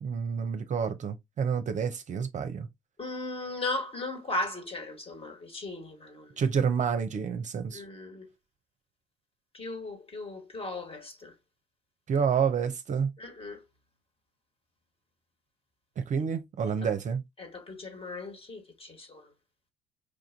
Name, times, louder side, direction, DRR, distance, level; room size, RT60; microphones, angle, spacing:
voice 1, 0.0-2.7 6.4-7.8 12.1-13.1 16.0-17.2, right 6 dB, 40° right, 0.6 m, -29 dB
voice 2, 3.0-6.3 7.7-8.3 9.5-11.3 13.2-13.6 17.4-19.2, left 2 dB, 30° left, 1.5 m, -37 dB
4.8 x 2.5 x 2.6 m
hypercardioid pair, 55°, 19 cm